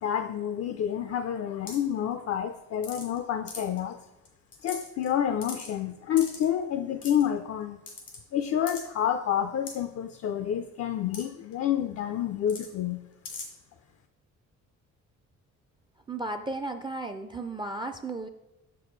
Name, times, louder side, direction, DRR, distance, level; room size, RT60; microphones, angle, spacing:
voice 1, 0.0-4.0 4.6-7.8 8.3-13.0, left 9 dB, 55° left, 8 dB, 0.4 m, -29 dB
sound 1, 1.7-1.9 2.8-3.2 3.5-3.8 4.3-4.4 4.5-5.1 5.4-5.7 6.2-6.5 7.0-7.2 7.9-8.2 8.7-8.8 9.7-9.8 11.1-11.2 11.5-11.6 12.5-12.7 13.3-13.5, left 4 dB, 90° left, 2.0 m, -39 dB
voice 2, 16.1-18.3, right 2 dB, 15° right, 7 dB, 0.4 m, -34 dB
6.8 x 6.7 x 3.2 m, 0.96 s
cardioid pair, 90°, 30 cm